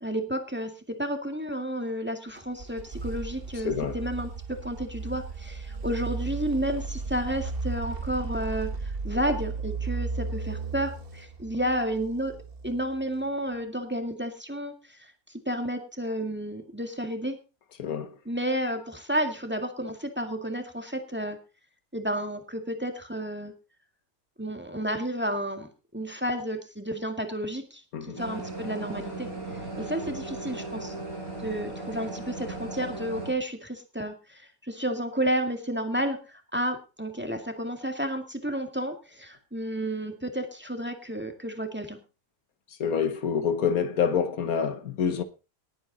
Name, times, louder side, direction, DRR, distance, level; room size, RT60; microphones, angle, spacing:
voice 1, 0.0-12.4 12.6-15.1 15.5-17.4 18.3-21.4 21.9-23.5 24.4-29.3 29.8-30.9 31.4-42.0, right 1 dB, 5° right, 2.0 m, -31 dB
sound 1, 2.4-13.2, right 4 dB, 45° right, 1.3 m, -35 dB
voice 2, 3.6-4.0 17.8-18.2 27.9-28.2 42.8-45.2, left 7 dB, 80° left, 1.6 m, -27 dB
sound 2, 28.2-33.3, right 2 dB, 85° right, 5.3 m, -37 dB
19.0 x 8.7 x 4.0 m
omnidirectional pair, 1.5 m